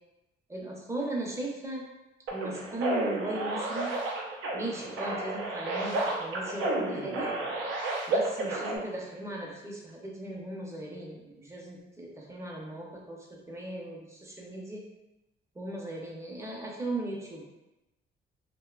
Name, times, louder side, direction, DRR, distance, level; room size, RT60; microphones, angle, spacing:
voice 1, 0.5-1.8 2.3-3.9 4.5-7.3 8.1-14.8 15.5-17.4, right 1 dB, 15° right, -2 dB, 0.6 m, -37 dB
sound 1, 2.3-8.8, right 2 dB, 85° right, 0.5 m, -32 dB
2.6 x 2.1 x 2.3 m, 0.96 s
cardioid pair, 90°, 20 cm